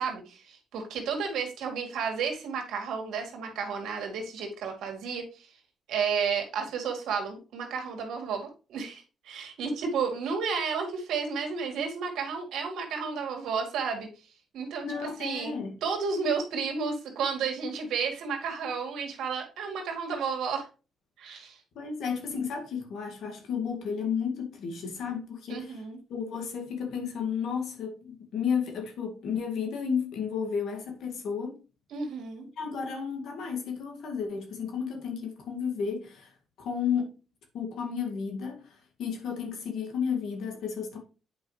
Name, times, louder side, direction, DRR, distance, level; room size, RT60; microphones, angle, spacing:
voice 1, 0.0-5.5 5.9-14.1 14.5-20.7 21.2-21.6 25.5-26.0 31.9-32.5, right 5 dB, 80° right, 1.9 m, -32 dB
voice 2, 14.8-15.8 21.8-25.8 26.1-31.6 32.6-36.3 36.6-37.1 37.5-38.6 39.0-41.0, left 6 dB, 75° left, 1.9 m, -32 dB
8.7 x 4.9 x 3.2 m
cardioid pair, 90°, 0 cm